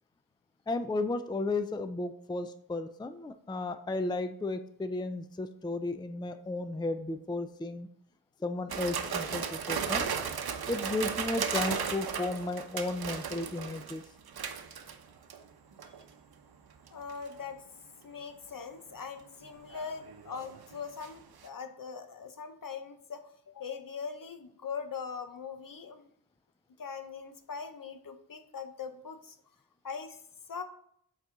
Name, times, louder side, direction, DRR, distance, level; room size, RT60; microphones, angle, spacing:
voice 1, 0.7-7.9 8.4-10.1 10.7-14.0, left 2 dB, 10° left, 9 dB, 0.4 m, -34 dB
sound 1, 8.7-15.4 15.8-16.1 16.9-17.3 19.5-21.1 21.4-21.5, right 6 dB, 70° right, 0.8 m, -35 dB
voice 2, 16.9-17.6 18.0-26.1 26.8-29.4 29.8-30.2 30.5-30.6, left 6 dB, 55° left, 9 dB, 0.8 m, -41 dB
8.1 x 4.1 x 3.8 m, 0.69 s
cardioid pair, 60°, 38 cm